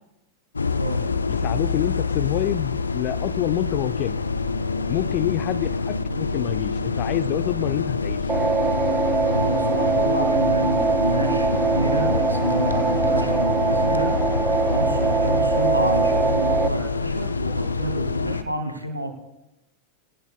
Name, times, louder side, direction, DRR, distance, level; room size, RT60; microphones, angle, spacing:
sound 1, 0.5-18.4, left 4 dB, 75° left, 0.7 m, -26 dB
voice 1, 1.3-4.2 4.9-8.3 15.2-15.4, left 13 dB, 40° left, 12 dB, 0.7 m, -27 dB
sound 2, 8.3-16.7, right 5 dB, 15° right, 0.6 m, -23 dB
voice 2, 9.3-14.1 14.7-19.1, equal, 85° right, 4 dB, 1.9 m, -28 dB
20.5 x 18.0 x 2.3 m, 0.91 s
figure-of-eight pair, 90°, 0 cm